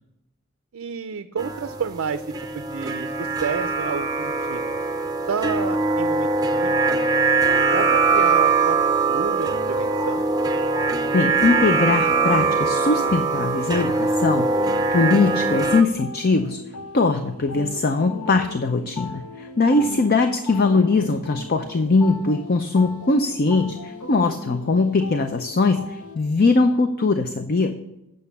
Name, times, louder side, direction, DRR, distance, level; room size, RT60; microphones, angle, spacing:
voice 1, 0.7-2.3 2.5-4.8 5.3-6.3 6.6-7.0 7.7-10.3 20.7-21.2, right 6 dB, 65° right, 10 dB, 0.4 m, -30 dB
sound 1, 1.4-15.8, right 4 dB, 15° right, 0.6 m, -22 dB
sound 2, 9.4-26.2, left 4 dB, 90° left, 1.1 m, -37 dB
voice 2, 11.1-14.5 14.9-16.6 16.9-27.8, left 3 dB, 45° left, 7 dB, 0.6 m, -21 dB
8.8 x 6.5 x 6.9 m, 0.88 s
head